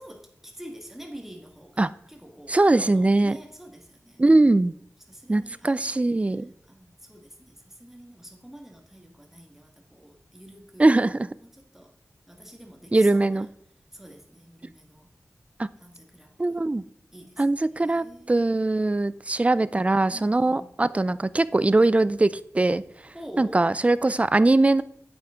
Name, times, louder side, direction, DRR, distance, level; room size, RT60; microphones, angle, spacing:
voice 1, 0.0-4.5 5.1-6.0 6.7-11.9 12.3-13.5 13.9-15.1 15.8-16.6 17.1-17.4 17.8-18.7 20.1-20.7 23.1-23.6, equal, 5° right, 2 dB, 1.5 m, -46 dB
voice 2, 2.5-3.4 4.2-4.7 5.3-6.5 10.8-11.3 12.9-13.5 15.6-15.7 16.4-16.8 17.4-22.8 23.4-24.8, right 2 dB, 25° right, 17 dB, 0.3 m, -21 dB
8.7 x 7.1 x 3.6 m, 0.68 s
wide cardioid pair, 70°, 6 cm